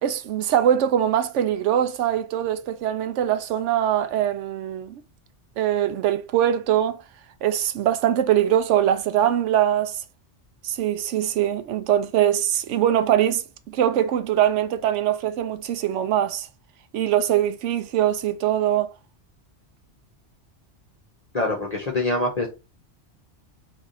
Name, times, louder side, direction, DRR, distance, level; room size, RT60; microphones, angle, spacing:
voice 1, 0.0-5.0 5.6-7.0 7.4-10.0 10.6-16.5 16.9-18.9, right 10 dB, 90° right, 0.9 m, -22 dB
voice 2, 21.3-22.5, left 2 dB, 35° left, 1.1 m, -24 dB
3.6 x 3.4 x 4.0 m
omnidirectional pair, 1.2 m